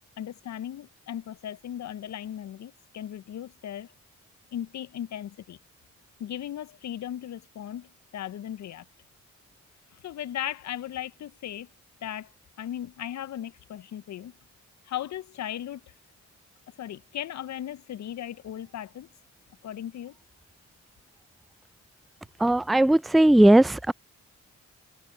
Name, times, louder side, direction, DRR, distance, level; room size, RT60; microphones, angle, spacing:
voice 1, 0.2-3.9 4.5-5.6 6.2-8.9 9.9-11.7 12.0-12.3 12.6-14.4 14.8-15.9 16.7-19.1 19.6-20.2, left 11 dB, 65° left, 0.6 m, -37 dB
voice 2, 22.4-23.9, right 1 dB, ahead, 0.3 m, -18 dB
cardioid pair, 60°, 30 cm